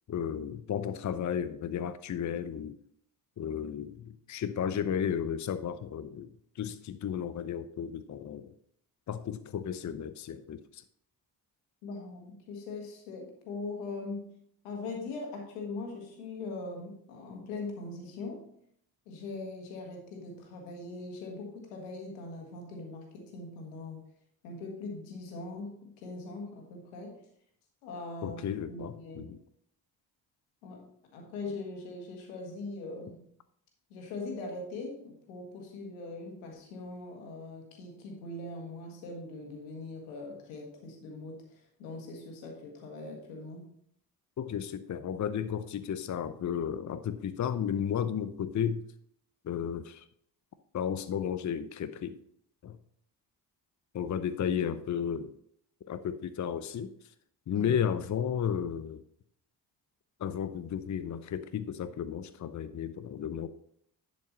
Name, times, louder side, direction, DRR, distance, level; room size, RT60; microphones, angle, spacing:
voice 1, 0.1-2.8 3.4-6.3 6.6-8.5 9.1-10.8 28.2-29.4 44.4-48.8 49.4-50.0 50.7-52.2 52.6-52.8 53.9-55.3 55.9-56.9 57.5-59.0 60.2-63.5, left 8 dB, 35° left, 12 dB, 0.7 m, -33 dB
voice 2, 11.8-14.3 14.6-18.5 19.1-24.0 24.4-27.2 27.8-29.3 30.6-33.2 33.9-43.7 57.5-57.8, left 3 dB, 85° left, 2 dB, 1.8 m, -41 dB
10.5 x 5.2 x 4.0 m, 0.68 s
hypercardioid pair, 40°, 49 cm